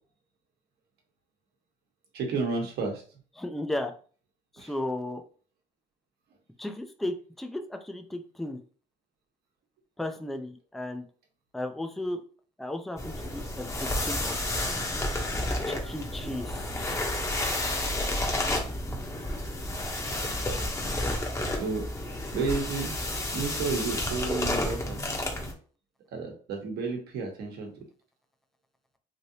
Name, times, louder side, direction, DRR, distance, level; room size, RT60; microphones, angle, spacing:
voice 1, 2.1-3.0 4.6-4.7 21.5-21.8 22.3-22.9 23.3-25.0 26.1-27.8, right 4 dB, 75° right, 1 dB, 1.1 m, -31 dB
voice 2, 3.4-3.9 4.5-5.2 6.6-8.6 10.0-11.1 11.5-12.2 12.6-14.4 15.6-16.7, left 1 dB, ahead, 6 dB, 0.4 m, -35 dB
sound 1, 13.0-25.5, left 1 dB, 15° left, 0.8 m, -31 dB
3.2 x 2.7 x 2.7 m, 0.40 s
cardioid pair, 110°, 17 cm